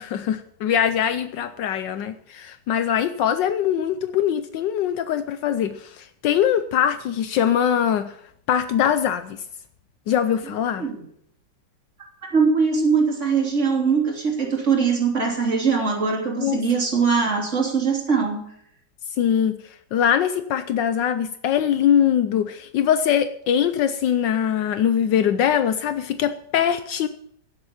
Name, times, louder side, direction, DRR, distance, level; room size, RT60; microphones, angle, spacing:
voice 1, 0.0-8.2 8.5-9.4 10.1-10.9 16.4-16.6 17.2-17.4 19.2-27.1, left 9 dB, 75° left, 10 dB, 1.4 m, -22 dB
voice 2, 12.3-18.5, right 5 dB, 40° right, 0 dB, 3.6 m, -21 dB
16.5 x 7.8 x 7.1 m, 0.70 s
omnidirectional pair, 2.0 m